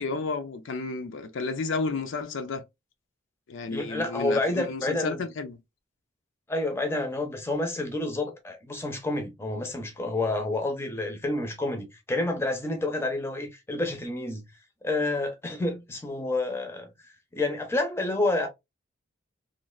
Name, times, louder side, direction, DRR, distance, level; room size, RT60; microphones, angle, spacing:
voice 1, 0.0-2.6 3.5-5.6, left 4 dB, 65° left, 0.4 m, -32 dB
voice 2, 3.7-5.2 6.5-14.4 14.8-16.9 17.3-18.5, left 2 dB, 10° left, 0.6 m, -29 dB
3.1 x 2.4 x 2.3 m
head